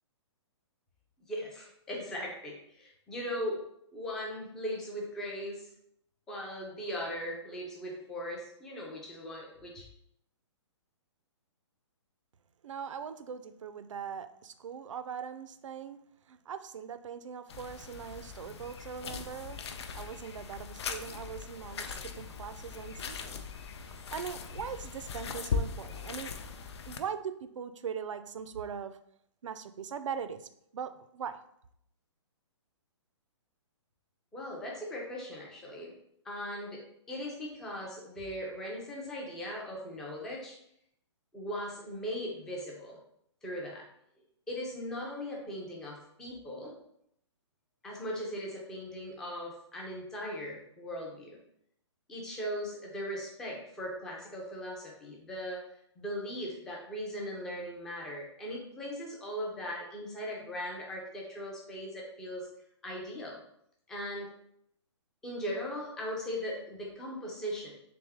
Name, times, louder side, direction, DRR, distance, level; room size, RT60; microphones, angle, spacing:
voice 1, 1.3-3.6 3.9-5.7 6.3-9.8 34.3-35.9 36.2-40.5 41.3-43.0 43.4-43.8 44.5-46.7 47.8-51.4 52.1-55.6 56.0-62.5 62.8-63.4 63.9-64.3 65.2-67.7, equal, 5° left, -2 dB, 0.3 m, -39 dB
voice 2, 12.6-16.0 16.3-23.4 24.0-26.3 26.9-29.0 29.4-31.4, right 7 dB, 85° right, 11 dB, 0.4 m, -41 dB
sound 1, 17.5-27.0, left 6 dB, 60° left, 0.5 m, -39 dB
3.4 x 3.4 x 3.4 m, 0.73 s
hypercardioid pair, 165°, 16 cm